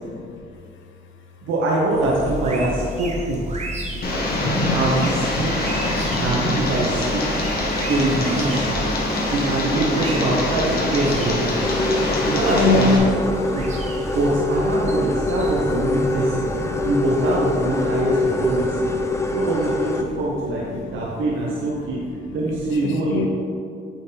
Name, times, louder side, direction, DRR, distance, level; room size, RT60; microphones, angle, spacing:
voice 1, 0.1-0.4 3.7-4.2 12.5-13.0 13.3-14.0 14.8-15.0 15.4-16.9 17.8-19.4 20.0-20.2 20.5-23.3, left 3 dB, 75° left, 4 dB, 0.8 m, -29 dB
voice 2, 1.4-3.4 4.7-5.7 6.2-7.4 7.9-8.8 9.3-11.6 12.2-13.2 13.5-13.7 14.1-16.5 16.8-18.9 19.3-22.0 22.3-23.3, right 2 dB, 80° right, -4 dB, 1.0 m, -23 dB
sound 1, 1.9-21.3, right 1 dB, 35° right, 1.0 m, -33 dB
Tick, 4.0-13.0, left 1 dB, 50° left, 1.3 m, -24 dB
sound 2, 11.6-20.0, left 2 dB, 15° left, 0.5 m, -24 dB
8.3 x 3.7 x 3.9 m, 2.4 s
cardioid pair, 90°, 20 cm